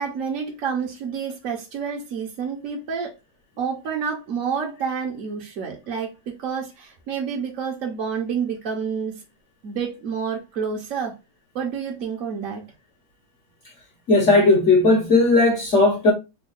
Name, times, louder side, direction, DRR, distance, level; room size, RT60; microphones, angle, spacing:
voice 1, 0.0-3.1 3.6-9.2 9.6-11.1 11.5-12.6, right 6 dB, 60° right, 0.9 m, -29 dB
voice 2, 14.1-16.1, left 2 dB, 55° left, 0.8 m, -16 dB
3.5 x 2.2 x 3.7 m
omnidirectional pair, 2.0 m